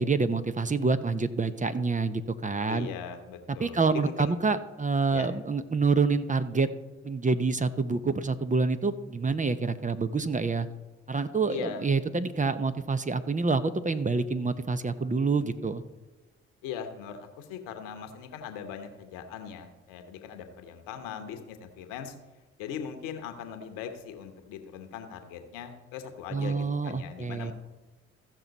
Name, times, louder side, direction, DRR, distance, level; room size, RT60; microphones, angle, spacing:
voice 1, 0.0-2.9 3.6-6.7 7.0-10.7 11.1-15.8 26.3-27.5, right 4 dB, 25° right, 11 dB, 0.8 m, -27 dB
voice 2, 2.7-4.3 5.1-5.3 11.5-11.8 16.6-22.1 22.6-27.5, left 8 dB, 80° left, 7 dB, 1.1 m, -40 dB
15.0 x 6.0 x 4.1 m, 1.1 s
hypercardioid pair, 45°, 32 cm